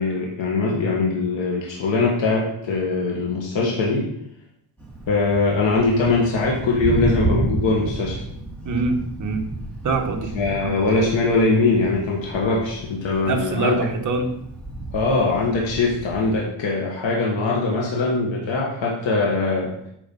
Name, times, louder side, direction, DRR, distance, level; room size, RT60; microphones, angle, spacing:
voice 1, 0.0-4.0 5.1-8.2 10.3-13.9 14.9-19.7, left 3 dB, 70° left, -2 dB, 1.8 m, -22 dB
Thunder, 4.8-16.4, right 2 dB, ahead, 2.0 m, -31 dB
voice 2, 8.6-9.4 9.8-10.3 10.6-10.7 13.2-14.3, right 3 dB, 40° right, 3 dB, 1.2 m, -24 dB
8.9 x 4.7 x 5.5 m, 0.74 s
cardioid pair, 155°, 48 cm